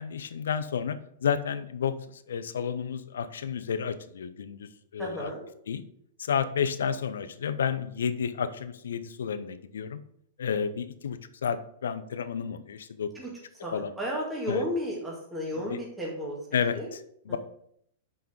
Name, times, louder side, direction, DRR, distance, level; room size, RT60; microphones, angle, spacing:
voice 1, 0.0-5.3 5.7-5.8 6.2-10.0 10.4-13.1 13.7-13.9 14.5-14.6 15.6-15.8 16.5-17.0 17.3-17.4, left 7 dB, 85° left, 11 dB, 0.6 m, -31 dB
voice 2, 5.0-5.5 13.2-13.3 13.6-16.9 17.3-17.4, equal, 10° right, -4 dB, 1.9 m, -33 dB
5.7 x 5.4 x 4.9 m, 0.68 s
hypercardioid pair, 120°, 0 cm